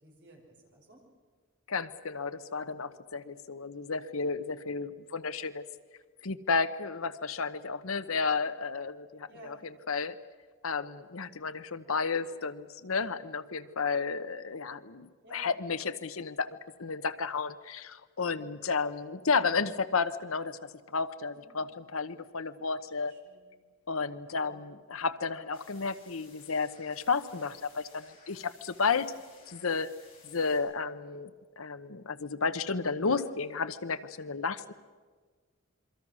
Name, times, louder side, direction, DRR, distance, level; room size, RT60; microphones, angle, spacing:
voice 1, 0.0-1.0 9.3-9.7 15.2-15.5 18.2-18.5 21.3-21.6 23.0-23.5 24.2-24.6 33.0-33.3, right 1 dB, 55° right, 0 dB, 5.8 m, -55 dB
voice 2, 1.7-5.6 6.2-10.2 10.6-23.1 23.9-29.1 29.5-29.9 30.2-31.3 31.6-34.7, left 4 dB, 80° left, 12 dB, 0.9 m, -32 dB
sound 1, 25.4-30.6, left 4 dB, 25° left, 7.1 m, -58 dB
28.0 x 23.5 x 6.3 m, 1.5 s
head